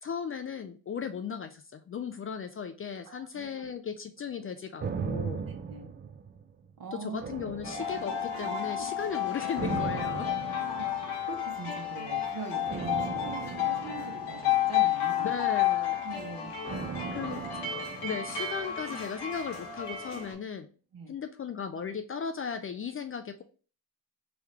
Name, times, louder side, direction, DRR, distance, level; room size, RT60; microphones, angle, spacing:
voice 1, 0.0-5.4 6.9-10.3 15.2-16.0 17.1-17.4 18.0-20.7 21.1-23.4, left 6 dB, 30° left, 8 dB, 0.4 m, -36 dB
voice 2, 3.1-3.7 5.5-5.9 6.8-7.2 10.6-15.3 16.0-16.5 17.1-17.5 20.9-21.1, right 5 dB, 50° right, 2 dB, 1.3 m, -43 dB
sound 1, 4.8-6.7 7.2-8.5 9.5-11.3 12.7-15.1 16.7-18.8 19.1-19.2, right 5 dB, 25° right, 0.4 m, -38 dB
sound 2, 7.6-20.3, left 10 dB, 65° left, 1.3 m, -31 dB
3.8 x 3.3 x 2.9 m, 0.38 s
supercardioid pair, 55°, 44 cm